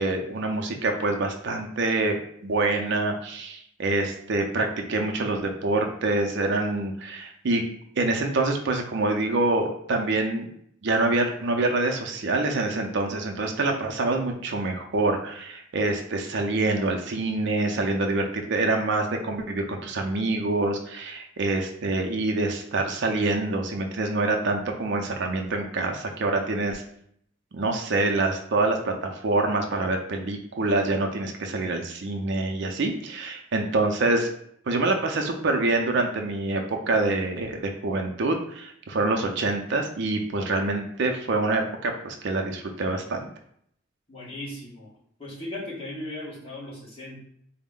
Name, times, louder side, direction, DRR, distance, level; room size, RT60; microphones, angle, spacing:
voice 1, 0.0-2.2 2.4-7.6 8.0-10.5 10.8-26.8 27.5-34.3 34.7-43.3, right 2 dB, 60° right, 3 dB, 0.5 m, -26 dB
voice 2, 44.1-44.9 45.2-47.2, left 1 dB, 30° left, -6 dB, 1.4 m, -37 dB
4.1 x 2.1 x 3.6 m, 0.68 s
head